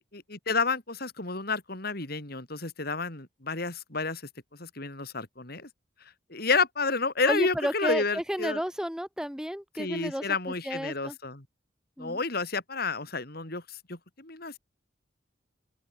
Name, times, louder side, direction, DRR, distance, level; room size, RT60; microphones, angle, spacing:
voice 1, 0.3-4.2 4.6-5.7 6.3-8.6 9.8-11.4 12.0-14.6, left 4 dB, 55° left, 4.0 m, -30 dB
voice 2, 7.3-11.2 12.0-12.2, equal, 5° right, 2.5 m, -32 dB
open air
head